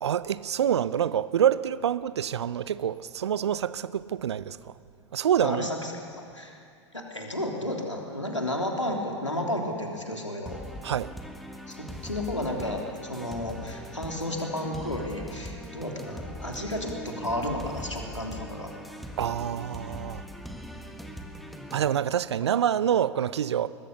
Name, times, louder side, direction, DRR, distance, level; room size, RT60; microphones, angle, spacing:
voice 1, 0.0-4.6 5.1-5.7 10.8-11.1 19.2-20.2 21.7-23.7, right 9 dB, 65° right, 0.7 m, -26 dB
voice 2, 5.4-6.6 6.9-10.6 11.7-12.8 13.1-18.7, left 1 dB, 85° left, 3.3 m, -32 dB
sound 1, 10.5-21.9, equal, ahead, 1.7 m, -41 dB
22.0 x 20.5 x 7.0 m
figure-of-eight pair, 90°, 15 cm